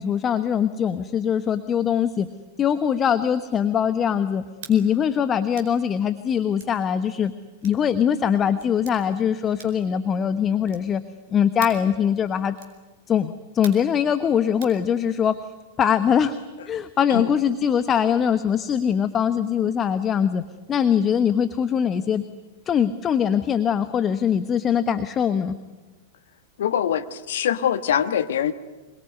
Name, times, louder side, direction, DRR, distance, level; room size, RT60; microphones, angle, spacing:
voice 1, 0.0-2.3 2.6-4.4 4.7-7.3 7.6-11.0 11.3-12.5 13.1-15.4 15.8-16.4 16.7-20.4 20.7-22.2 22.7-25.5, left 8 dB, 25° left, 12 dB, 1.1 m, -22 dB
sound 1, 4.6-4.8 5.5-5.8 6.6-6.8 7.6-7.8 8.6-9.0 9.6-9.9 10.6-11.0 11.6-11.9 12.6-12.8 13.6-13.9 14.6-14.8, right 9 dB, 55° right, 4.7 m, -42 dB
voice 2, 26.6-28.5, left 9 dB, 65° left, 11 dB, 1.3 m, -23 dB
27.0 x 22.0 x 9.6 m, 1.2 s
figure-of-eight pair, 95°, 0 cm